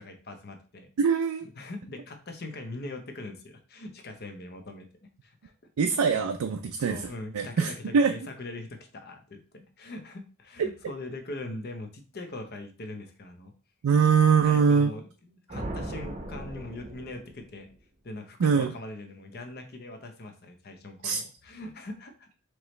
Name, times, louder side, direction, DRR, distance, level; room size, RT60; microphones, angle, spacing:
voice 1, 0.0-0.9 1.6-4.9 5.2-5.5 6.8-13.5 14.4-17.7 18.0-22.3, left 2 dB, 50° left, 5 dB, 0.8 m, -41 dB
voice 2, 1.0-1.5 5.8-7.0 7.3-8.1 10.6-10.7 13.8-14.9 18.4-18.7 21.0-21.2, right 6 dB, 85° right, 5 dB, 0.4 m, -23 dB
sound 1, 15.5-17.8, right 1 dB, 30° right, 0.7 m, -38 dB
4.6 x 3.0 x 3.2 m, 0.36 s
head